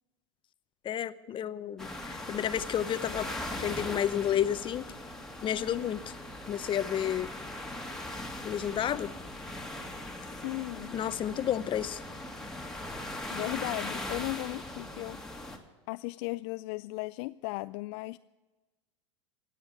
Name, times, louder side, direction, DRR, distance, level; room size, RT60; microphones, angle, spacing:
voice 1, 0.8-3.3 3.6-4.9 5.4-6.0 6.5-7.3 8.4-9.1 10.9-12.0, left 10 dB, 30° left, 15 dB, 0.8 m, -31 dB
sound 1, 1.8-15.6, left 1 dB, 5° left, 2.1 m, -40 dB
voice 2, 10.3-11.0 13.3-15.2 15.9-18.2, left 22 dB, 60° left, 13 dB, 0.4 m, -36 dB
16.5 x 8.4 x 8.4 m, 1.2 s
hypercardioid pair, 100°, 16 cm